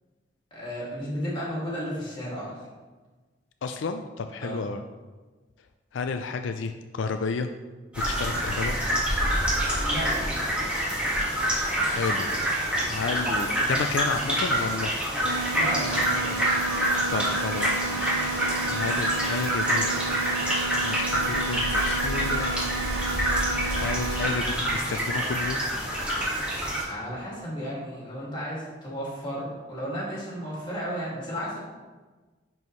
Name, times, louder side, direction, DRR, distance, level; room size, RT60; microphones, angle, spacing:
voice 1, 0.5-2.6 4.4-4.7 9.8-10.4 15.5-16.4 26.7-31.6, equal, 25° left, -5 dB, 2.2 m, -34 dB
voice 2, 3.6-4.8 5.9-7.5 8.1-8.7 11.8-12.3 12.9-14.9 17.1-18.2 18.7-19.9 20.8-22.5 23.8-25.6, left 4 dB, 80° left, 7 dB, 0.4 m, -31 dB
sound 1, 7.9-26.8, right 1 dB, 5° right, 1.6 m, -27 dB
sound 2, 15.2-24.2, right 3 dB, 80° right, 2.1 m, -32 dB
10.5 x 4.6 x 3.2 m, 1.3 s
head